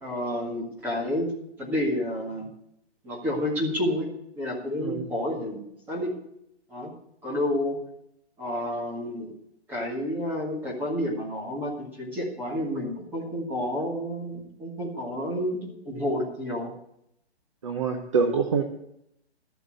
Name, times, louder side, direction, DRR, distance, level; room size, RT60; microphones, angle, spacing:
voice 1, 0.0-1.3 1.6-2.5 3.0-4.1 4.4-5.6 5.9-6.1 6.7-6.9 7.2-7.8 8.4-9.3 9.7-16.7, left 1 dB, 5° right, -4 dB, 1.9 m, -30 dB
voice 2, 17.6-18.6, right 5 dB, 30° right, 6 dB, 0.8 m, -25 dB
13.0 x 8.3 x 6.5 m, 0.77 s
hypercardioid pair, 170°, 33 cm